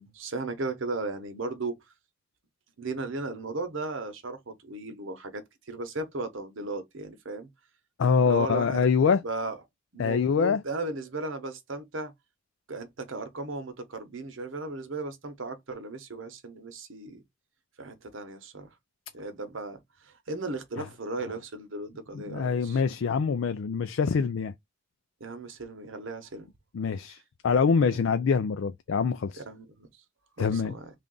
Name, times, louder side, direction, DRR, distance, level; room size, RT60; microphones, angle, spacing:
voice 1, 0.0-1.8 2.8-5.4 5.7-7.5 8.2-8.9 9.2-9.6 9.9-12.1 12.7-17.2 17.8-18.7 19.1-22.8 25.2-26.5 27.9-28.0 29.4-29.9 30.4-30.9, right 3 dB, 75° right, 1.0 m, -36 dB
voice 2, 8.0-9.2 10.0-10.6 22.1-24.5 26.7-29.4 30.4-30.7, left 6 dB, 75° left, 0.4 m, -25 dB
3.5 x 2.5 x 3.7 m
head